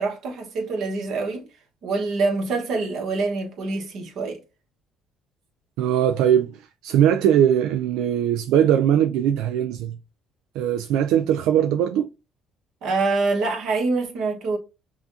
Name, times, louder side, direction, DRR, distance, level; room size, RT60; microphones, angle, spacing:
voice 1, 0.0-1.4 1.8-4.4 12.8-14.6, right 3 dB, 65° right, 1.4 m, -25 dB
voice 2, 5.8-10.0 10.6-12.1, right 10 dB, 85° right, 0.3 m, -20 dB
5.7 x 2.5 x 2.7 m
cardioid pair, 95°, 0 cm